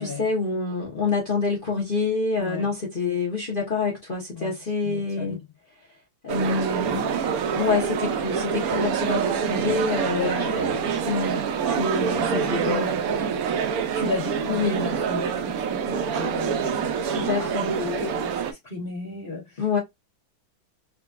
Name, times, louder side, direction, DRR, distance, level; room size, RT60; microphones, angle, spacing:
voice 1, 0.0-5.4 6.2-13.0 14.5-14.9 17.1-17.7 19.6-19.8, left 4 dB, 55° left, 0.6 m, -27 dB
voice 2, 2.4-2.7 4.3-5.4 10.1-10.4 12.1-19.6, left 4 dB, 25° left, 1.4 m, -35 dB
sound 1, 6.3-18.5, right 7 dB, 75° right, 0.8 m, -26 dB
3.7 x 2.2 x 2.4 m
omnidirectional pair, 2.1 m